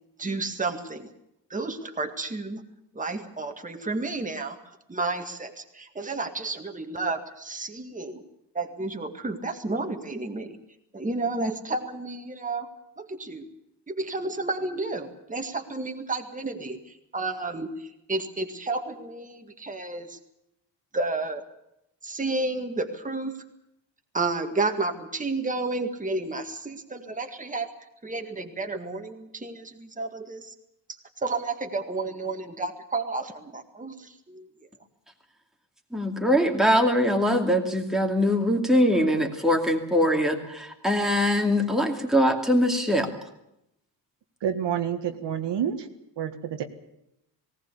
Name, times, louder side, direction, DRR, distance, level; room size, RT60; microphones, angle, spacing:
voice 1, 0.2-1.1 1.5-2.6 2.9-4.6 4.9-8.2 8.5-10.6 10.9-12.7 13.0-13.5 13.9-20.2 20.9-21.4 22.0-23.3 24.1-27.7 28.0-30.5 31.2-34.7, right 3 dB, 20° right, 5 dB, 2.0 m, -31 dB
voice 2, 35.9-43.1, equal, ahead, 2 dB, 2.4 m, -22 dB
voice 3, 44.4-45.9 46.2-46.6, right 9 dB, 75° right, 6 dB, 1.8 m, -28 dB
19.0 x 18.0 x 8.4 m, 0.81 s
cardioid pair, 135°, 43 cm